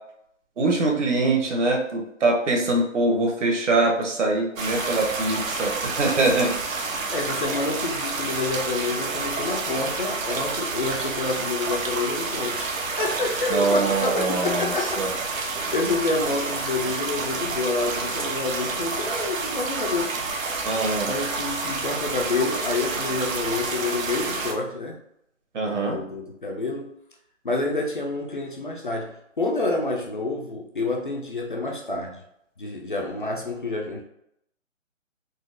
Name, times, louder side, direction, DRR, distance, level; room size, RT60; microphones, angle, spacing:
voice 1, 0.6-6.5 13.5-15.1 20.6-21.1 25.5-26.0, right 2 dB, 65° right, 0 dB, 1.1 m, -23 dB
sound 1, 4.6-24.5, right 3 dB, 80° right, 0.7 m, -29 dB
voice 2, 7.1-15.0 15.7-20.2 21.0-25.0 25.7-27.0 27.4-32.2 32.6-34.0, left 3 dB, 40° left, 0 dB, 0.4 m, -28 dB
3.8 x 2.0 x 2.5 m, 0.75 s
hypercardioid pair, 160°, 39 cm